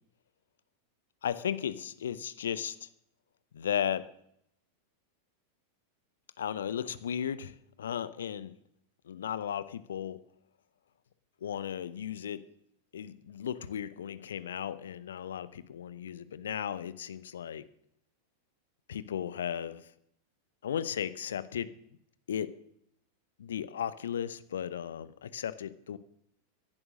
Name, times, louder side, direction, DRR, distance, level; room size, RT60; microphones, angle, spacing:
voice 1, 1.2-2.9 3.5-4.1 6.4-8.5 9.0-10.2 11.4-12.4 12.9-17.7 18.9-19.9 20.6-21.7 22.3-22.5 23.4-26.0, left 9 dB, 65° left, 17 dB, 0.8 m, -35 dB
16.0 x 11.0 x 6.4 m, 0.75 s
figure-of-eight pair, 90°, 0 cm